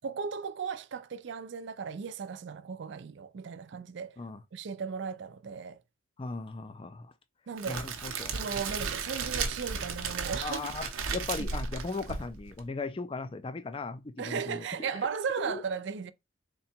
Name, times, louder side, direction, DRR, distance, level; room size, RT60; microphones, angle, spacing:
voice 1, 0.0-4.2 4.5-5.8 7.5-7.9 8.3-10.7 14.2-16.1, right 6 dB, 60° right, 0.4 m, -36 dB
voice 2, 6.2-7.1 7.7-8.4 10.4-14.9 15.4-15.6, left 3 dB, 25° left, 0.4 m, -37 dB
Crackle, 7.6-12.6, right 5 dB, 90° right, 0.8 m, -35 dB
3.7 x 2.2 x 4.3 m
head